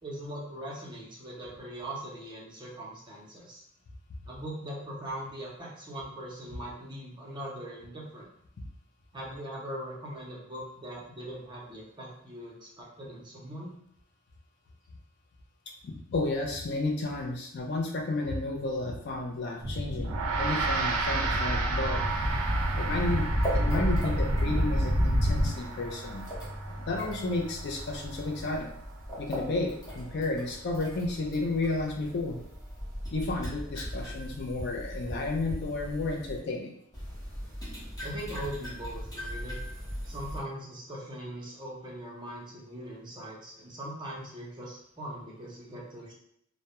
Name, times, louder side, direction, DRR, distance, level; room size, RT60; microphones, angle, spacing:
voice 1, 0.0-3.6 4.3-8.3 9.1-13.7 38.0-39.6 40.0-46.1, right 1 dB, 20° right, -4 dB, 0.6 m, -41 dB
voice 2, 15.8-22.0 22.8-26.2 26.8-28.7 29.2-32.4 33.1-36.7, left 2 dB, 50° left, 1 dB, 0.4 m, -32 dB
sound 1, 19.6-25.5, equal, 75° left, 0.9 m, -28 dB
Gong, 20.0-29.7, right 4 dB, 85° right, 0.4 m, -35 dB
sound 2, 22.0-36.4 36.9-40.4, equal, 15° left, 0.7 m, -40 dB
2.2 x 2.0 x 2.8 m, 0.72 s
head